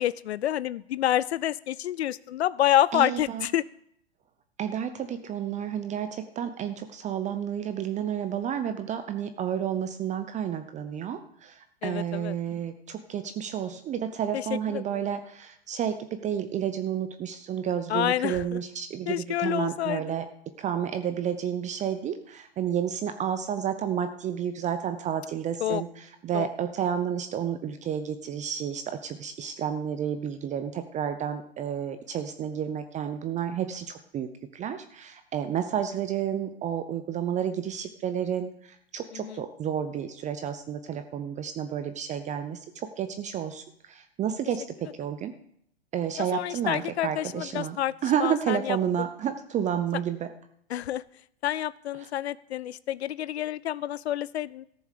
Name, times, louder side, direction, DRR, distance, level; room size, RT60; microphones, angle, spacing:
voice 1, 0.0-3.6 11.8-12.4 14.3-15.0 17.9-18.6 19.1-20.2 25.6-25.8 26.3-26.5 39.1-39.4 46.2-47.9 48.2-48.8 50.7-51.0 51.4-54.7, left 12 dB, 85° left, 19 dB, 0.5 m, -28 dB
voice 2, 2.9-3.4 4.6-11.5 11.8-16.0 16.2-20.2 20.6-25.9 26.2-34.3 34.5-38.5 38.9-43.6 43.9-45.3 45.9-47.8 48.0-50.3, right 9 dB, 25° right, 9 dB, 0.7 m, -31 dB
14.0 x 7.0 x 6.6 m, 0.71 s
hypercardioid pair, 115°, 32 cm